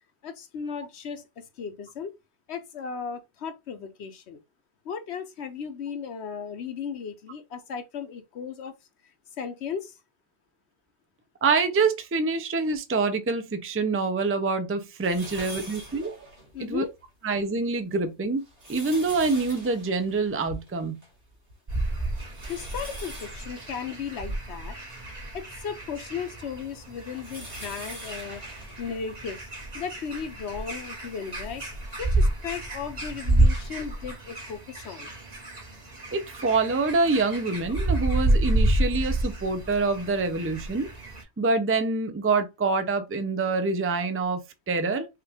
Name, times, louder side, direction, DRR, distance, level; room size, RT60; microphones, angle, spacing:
voice 1, 0.2-2.1 2.5-4.4 4.8-8.8 9.4-10.0 16.5-16.9 22.5-24.8 25.3-28.4 28.8-29.5 29.7-31.6 32.0-35.1, left 6 dB, 65° left, 1.0 m, -36 dB
voice 2, 11.4-16.3 16.6-16.8 17.2-18.4 18.7-21.0 36.1-40.9 41.4-45.1, right 3 dB, 20° right, 0.4 m, -26 dB
sound 1, 15.0-16.9 17.4-17.5 18.2-21.2 21.5-21.6 22.1-25.1 25.8-29.7 30.4-30.5 31.8-31.9, right 1 dB, 70° right, 3.2 m, -44 dB
sound 2, 21.7-41.2, right 1 dB, 35° right, 1.3 m, -29 dB
5.7 x 2.5 x 3.4 m
omnidirectional pair, 1.2 m